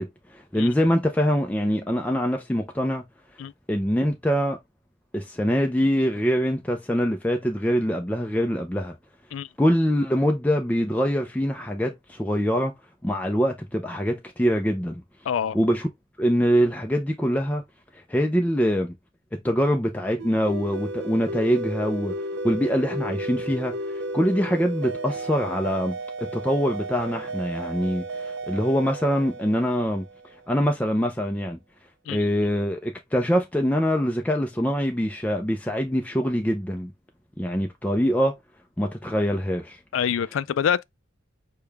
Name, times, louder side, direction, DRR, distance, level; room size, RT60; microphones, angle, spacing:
voice 1, 0.0-3.0 3.7-4.6 5.1-8.9 9.6-12.7 13.0-15.0 15.5-15.9 16.2-17.6 17.9-18.9 19.3-22.2 22.4-26.0 26.3-30.0 30.5-31.6 32.1-36.9 37.4-38.3 38.8-39.8, equal, 10° left, 0.5 m, -24 dB
voice 2, 15.3-15.6 32.1-32.3 39.9-40.8, left 8 dB, 75° left, 0.3 m, -25 dB
sound 1, 20.2-30.5, right 2 dB, 60° right, 0.5 m, -33 dB
6.7 x 2.3 x 3.4 m
head